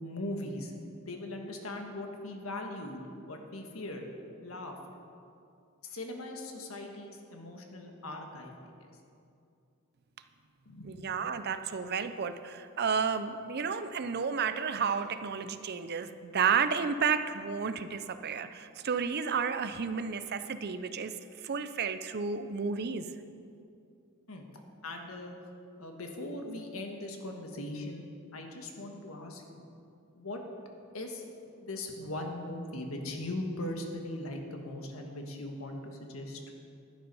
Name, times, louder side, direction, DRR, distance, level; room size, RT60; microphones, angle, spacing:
voice 1, 0.0-0.7 1.1-4.1 4.4-4.7 5.8-8.7 10.7-11.1 24.3-24.5 24.8-25.4 25.8-28.1 28.3-29.6 30.1-30.4 30.9-31.3 31.6-36.5, left 1 dB, 85° left, 2 dB, 1.5 m, -40 dB
voice 2, 10.8-21.1 21.4-23.1, right 6 dB, 50° right, 10 dB, 0.6 m, -32 dB
11.5 x 9.6 x 5.5 m, 2.5 s
head